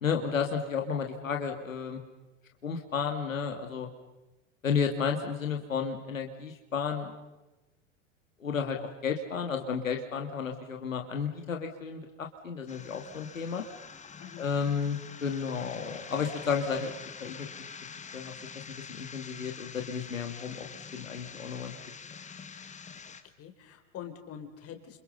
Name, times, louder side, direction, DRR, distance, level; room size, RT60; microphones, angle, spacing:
voice 1, 0.0-2.0 2.6-3.9 4.6-7.1 8.4-13.6 14.4-16.9 17.2-17.5 18.1-18.6 18.9-20.7 20.9-21.8, left 6 dB, 85° left, 3 dB, 2.7 m, -32 dB
sound 1, 12.7-23.2, left 6 dB, 20° left, 2.1 m, -46 dB
voice 2, 23.4-25.0, left 9 dB, 35° left, 5 dB, 4.7 m, -45 dB
29.0 x 29.0 x 5.5 m, 1.0 s
hypercardioid pair, 95°, 38 cm